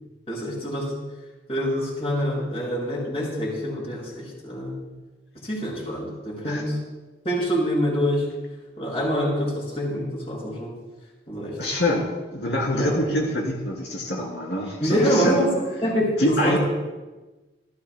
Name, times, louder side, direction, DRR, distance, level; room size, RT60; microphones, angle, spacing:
voice 1, 0.3-0.9 1.5-4.7 5.4-6.8 7.2-8.3 8.8-10.7 11.3-11.6 12.7-13.0 14.8-16.6, equal, 35° left, -3 dB, 6.1 m, -25 dB
voice 2, 11.6-15.4 16.2-16.6, left 1 dB, 80° left, -1 dB, 2.9 m, -25 dB
28.5 x 14.5 x 2.2 m, 1.2 s
head